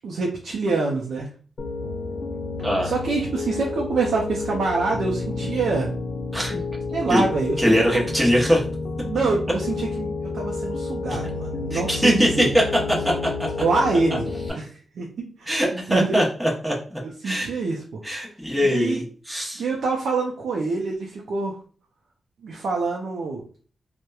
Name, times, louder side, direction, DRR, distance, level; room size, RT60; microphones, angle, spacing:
voice 1, 0.0-1.3 2.8-5.9 6.9-8.1 9.0-12.5 13.6-14.2 14.5-14.7 15.0-16.2 17.0-18.0 18.7-19.0 19.6-21.6 22.4-23.4, right 3 dB, 80° right, -1 dB, 0.4 m, -26 dB
Piano, 1.6-14.5, left 3 dB, 55° left, 0.4 m, -30 dB
voice 2, 7.6-8.7 11.7-12.3 12.5-12.6 15.5-17.5 18.0-19.6, equal, 5° right, -3 dB, 0.7 m, -22 dB
2.8 x 2.0 x 2.2 m, 0.42 s
wide cardioid pair, 130°, 0 cm